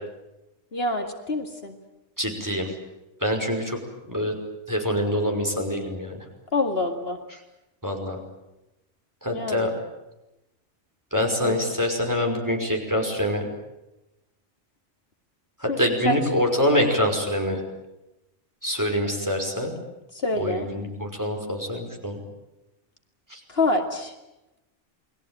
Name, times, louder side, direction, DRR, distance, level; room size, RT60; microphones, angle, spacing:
voice 1, 0.7-1.8 6.5-7.2 9.3-9.7 11.4-11.6 15.7-15.8 16.0-16.2 20.1-20.7 23.5-24.1, left 2 dB, 55° left, 4 dB, 2.4 m, -26 dB
voice 2, 2.2-2.7 3.2-3.8 4.1-4.4 4.7-6.2 7.8-8.2 9.2-9.7 11.1-13.4 15.6-17.6 18.6-19.7 20.4-22.2 23.3-23.4, left 1 dB, 15° right, 2 dB, 5.6 m, -25 dB
29.0 x 21.5 x 9.2 m, 0.95 s
omnidirectional pair, 1.2 m